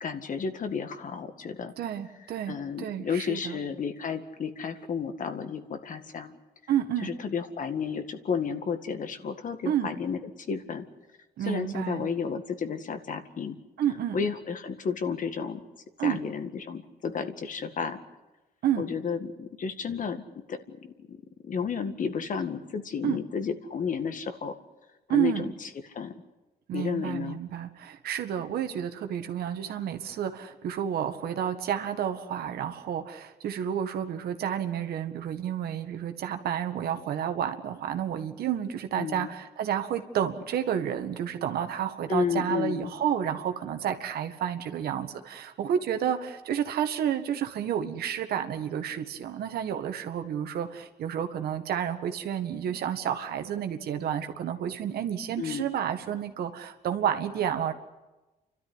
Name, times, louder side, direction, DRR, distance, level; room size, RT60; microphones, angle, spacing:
voice 1, 0.0-1.7 2.5-6.3 7.0-10.2 10.5-10.9 11.5-13.5 14.1-15.6 16.0-18.0 18.8-20.2 20.5-20.6 21.1-21.2 21.4-24.5 25.1-25.7 25.9-26.1 26.7-27.4 39.0-39.3 42.1-42.9 55.4-55.6, left 6 dB, 55° left, 8 dB, 1.9 m, -32 dB
voice 2, 1.8-3.6 6.7-7.1 9.7-9.9 11.4-12.1 13.8-14.2 16.0-16.2 18.6-18.8 23.0-23.2 25.1-25.5 26.7-57.7, right 9 dB, 75° right, 7 dB, 1.8 m, -30 dB
29.0 x 13.0 x 9.7 m, 1.1 s
cardioid pair, 80°, 16 cm